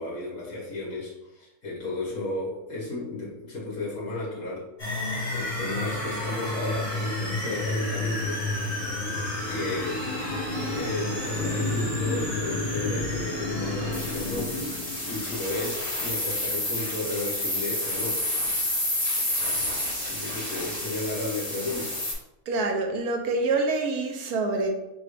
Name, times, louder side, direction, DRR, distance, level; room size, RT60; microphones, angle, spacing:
voice 1, 0.0-4.6 5.3-8.4 9.5-10.0 10.7-14.5 15.1-18.2 20.1-22.1, left 2 dB, 60° left, -6 dB, 2.0 m, -33 dB
sound 1, 4.8-22.1, left 1 dB, 25° left, 1.6 m, -30 dB
sound 2, 8.2-15.7, left 2 dB, 85° left, 1.1 m, -35 dB
voice 2, 22.5-24.7, right 3 dB, 85° right, 3 dB, 1.3 m, -26 dB
5.7 x 2.4 x 3.4 m, 0.94 s
omnidirectional pair, 1.6 m